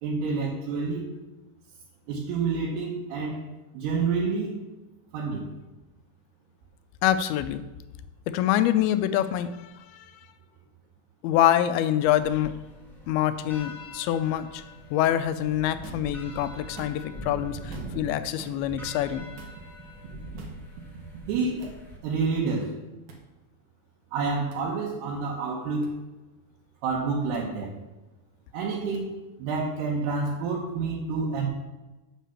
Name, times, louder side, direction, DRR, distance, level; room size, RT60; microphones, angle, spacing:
voice 1, 0.0-1.1 2.1-3.4 3.7-4.6 5.1-5.5 21.3-21.7 22.0-22.8 24.1-25.9 26.8-27.7 28.5-29.1 29.4-31.5, right 4 dB, 85° right, -3 dB, 3.1 m, -28 dB
voice 2, 7.0-7.6 8.3-10.1 11.2-12.5 13.1-14.6 14.9-19.3, left 11 dB, 80° left, 12 dB, 2.4 m, -25 dB
sound 1, 12.0-22.0, right 1 dB, ahead, 0.9 m, -43 dB
sound 2, 15.8-16.1 16.6-17.2 17.7-18.1 18.4-18.6 19.4-19.6 20.4-20.6 21.6-21.8 23.1-23.2 24.5-24.7 25.8-25.9 27.3-27.4 28.9-29.0, right 4 dB, 60° right, 2.5 m, -45 dB
7.4 x 6.5 x 7.0 m, 1.1 s
omnidirectional pair, 4.6 m